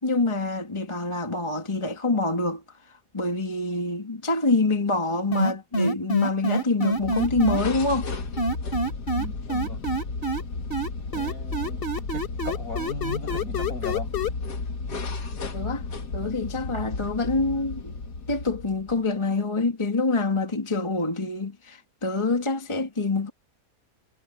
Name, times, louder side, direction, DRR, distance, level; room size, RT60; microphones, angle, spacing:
voice 1, 0.0-8.1 15.5-15.8 16.1-17.9 18.3-23.3, left 3 dB, 20° left, 1.9 m, -26 dB
sound 1, 5.3-7.6 8.4-10.4 10.7-14.3, equal, 35° left, 2.9 m, -26 dB
sound 2, 6.9-19.1, left 3 dB, 80° left, 2.5 m, -33 dB
voice 2, 9.1-9.8 11.1-11.9 12.4-14.1, left 2 dB, 60° left, 6.3 m, -36 dB
omnidirectional pair, 1.7 m